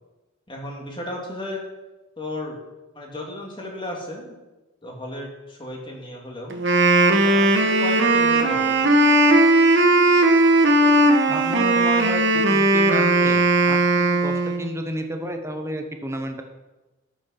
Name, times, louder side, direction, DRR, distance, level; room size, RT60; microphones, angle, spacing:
voice 1, 0.5-1.6 2.2-2.6 2.9-4.3 4.8-6.6 7.1-9.0, left 1 dB, 25° left, 0 dB, 2.2 m, -34 dB
Wind instrument woodwind instrument, 6.5-14.7, right 2 dB, 60° right, 1.1 m, -17 dB
voice 2, 11.3-16.4, right 1 dB, 15° right, 5 dB, 1.0 m, -31 dB
12.5 x 6.3 x 5.6 m, 1.1 s
head